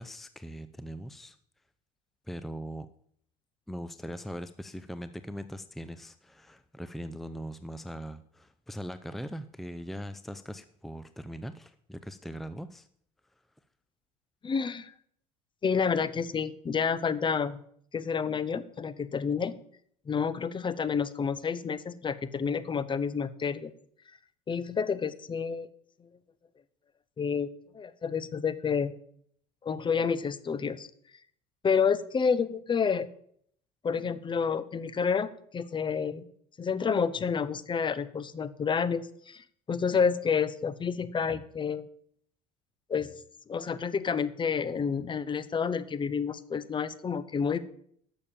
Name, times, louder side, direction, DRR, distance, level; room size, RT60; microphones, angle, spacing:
voice 1, 0.0-1.4 2.3-2.9 3.7-12.9, equal, ahead, 12 dB, 0.6 m, -40 dB
voice 2, 14.4-14.9 15.6-17.6 17.9-19.5 20.1-23.7 24.5-25.7 27.2-28.9 29.6-30.9 31.6-33.1 33.8-36.2 36.6-41.9 42.9-43.1 43.5-47.6, left 6 dB, 30° left, 15 dB, 0.9 m, -29 dB
12.0 x 7.0 x 7.4 m, 0.65 s
hypercardioid pair, 80°, 17 cm